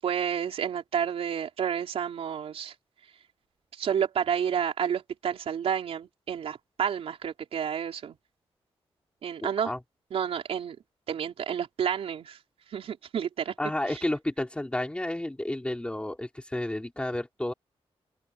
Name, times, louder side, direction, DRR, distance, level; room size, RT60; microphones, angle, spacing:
voice 1, 0.0-2.7 3.8-8.2 9.2-9.7 10.1-10.8 11.1-12.4 12.7-13.5, right 8 dB, 90° right, 4.3 m, -30 dB
voice 2, 9.4-9.8 13.6-17.5, left 1 dB, 10° left, 5.1 m, -31 dB
open air
wide cardioid pair, 115°, 10 cm